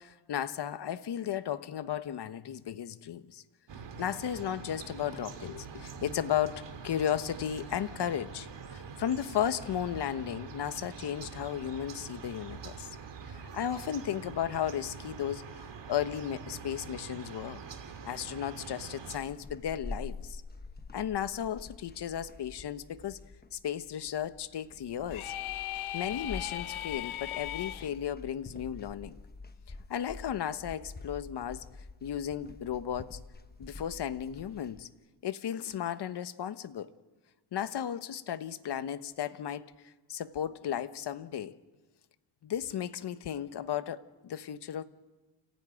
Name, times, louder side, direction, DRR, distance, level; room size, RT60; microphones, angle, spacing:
voice 1, 0.0-3.4 4.0-13.0 13.3-15.4 15.9-17.6 18.0-20.4 20.9-23.2 23.5-25.3 25.9-29.2 29.9-31.6 32.0-33.2 33.6-34.9 35.2-36.9 37.5-41.5 42.4-44.8, left 9 dB, 55° left, 11 dB, 1.2 m, -35 dB
sound 1, 3.7-19.2, right 5 dB, 60° right, 2.7 m, -45 dB
sound 2, 19.1-34.8, left 3 dB, 20° left, 1.1 m, -47 dB
sound 3, 25.1-27.9, left 13 dB, 80° left, 0.9 m, -37 dB
30.0 x 16.0 x 9.1 m, 1.2 s
cardioid pair, 135°, 48 cm